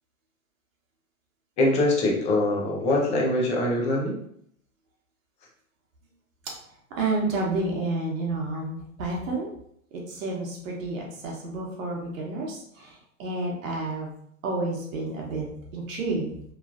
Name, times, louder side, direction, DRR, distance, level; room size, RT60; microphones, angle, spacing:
voice 1, 1.6-4.1, left 2 dB, 15° left, -2 dB, 0.4 m, -23 dB
voice 2, 7.0-9.5 10.1-14.1 14.4-15.5 15.7-16.3, right 2 dB, 65° right, -2 dB, 1.1 m, -30 dB
3.1 x 2.4 x 2.5 m, 0.68 s
hypercardioid pair, 130°, 43 cm